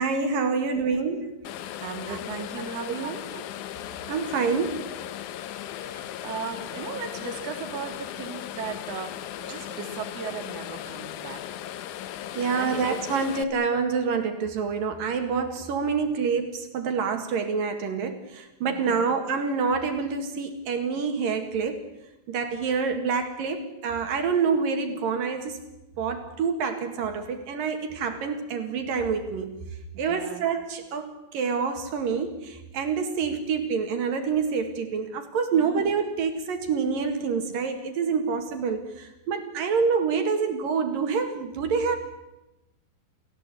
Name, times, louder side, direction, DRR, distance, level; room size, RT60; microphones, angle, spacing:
voice 1, 0.0-1.4 2.1-2.2 3.3-3.4 4.1-4.8 12.4-21.8 22.3-25.6 26.0-29.6 30.0-42.0, right 5 dB, 65° right, 6 dB, 3.6 m, -27 dB
sound 1, 1.4-13.4, left 11 dB, 70° left, 2.1 m, -37 dB
voice 2, 1.8-3.3 5.7-11.6 12.3-12.8 18.6-19.1 29.9-30.4 35.5-35.8, right 6 dB, 50° right, 4 dB, 2.9 m, -37 dB
29.5 x 15.5 x 8.5 m, 0.95 s
omnidirectional pair, 4.3 m